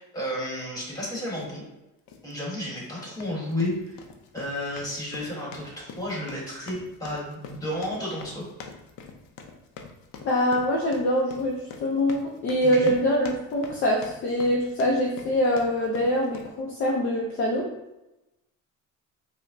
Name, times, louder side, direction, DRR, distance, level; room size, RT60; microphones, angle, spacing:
voice 1, 0.0-1.6 2.2-4.0 4.3-8.4 12.6-12.9, left 1 dB, 10° left, -5 dB, 1.3 m, -32 dB
sound 1, 1.3-1.5 2.1-2.3 3.0-16.6, left 5 dB, 80° left, 0.6 m, -45 dB
voice 2, 10.2-17.6, equal, 35° left, -2 dB, 0.5 m, -24 dB
4.9 x 2.1 x 2.6 m, 0.98 s
cardioid pair, 150°, 34 cm